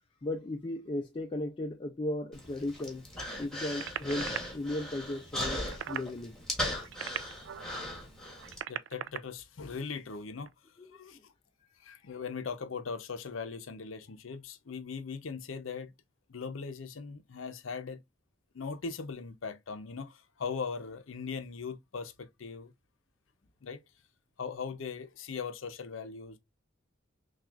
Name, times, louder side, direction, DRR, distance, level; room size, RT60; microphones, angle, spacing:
voice 1, 0.2-3.0 3.4-5.6 5.9-6.4 10.8-11.2, left 1 dB, 25° left, 0.4 m, -36 dB
Human voice, 2.3-8.6, left 1 dB, 5° left, 1.4 m, -38 dB
sound 1, 3.7-4.4 5.5-6.1 6.7-7.7 8.3-9.2 10.4-10.5, right 9 dB, 70° right, 0.3 m, -38 dB
voice 2, 8.7-10.5 10.9-11.3 11.8-15.9 16.3-18.0 18.5-22.7 23.6-23.8 24.4-26.4, left 5 dB, 85° left, 0.6 m, -39 dB
6.0 x 2.4 x 2.4 m
head